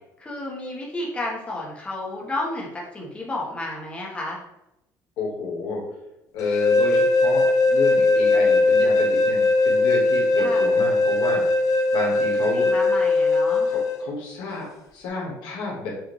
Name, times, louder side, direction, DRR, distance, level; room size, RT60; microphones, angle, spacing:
voice 1, 0.2-4.4 10.4-10.7 12.5-13.7, left 2 dB, 15° left, -3 dB, 1.2 m, -32 dB
voice 2, 5.2-5.8 6.3-11.4 11.9-12.7 13.7-15.9, left 3 dB, 80° left, -2 dB, 1.5 m, -31 dB
sound 1, 6.4-14.0, left 3 dB, 50° left, 0.7 m, -20 dB
6.4 x 2.6 x 3.2 m, 0.89 s
cardioid pair, 130°, 7 cm